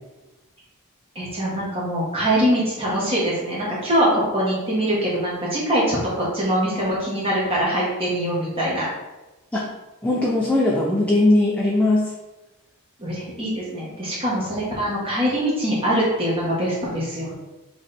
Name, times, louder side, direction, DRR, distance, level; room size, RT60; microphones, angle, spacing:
voice 1, 1.2-8.9 13.0-17.3, equal, 25° right, -7 dB, 1.7 m, -23 dB
voice 2, 10.0-12.1, left 2 dB, 5° left, -5 dB, 0.7 m, -19 dB
6.3 x 3.4 x 4.3 m, 1.1 s
head